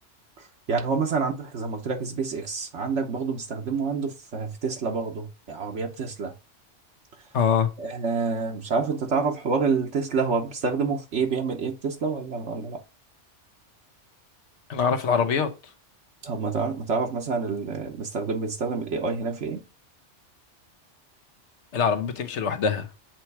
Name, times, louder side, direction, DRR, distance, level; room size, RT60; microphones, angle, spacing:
voice 1, 0.4-6.3 7.8-12.8 16.2-19.6, right 4 dB, 70° right, 1.3 m, -28 dB
voice 2, 7.3-7.7 14.7-15.5 21.7-22.9, left 6 dB, 70° left, 1.2 m, -23 dB
7.7 x 3.0 x 4.6 m
omnidirectional pair, 1.2 m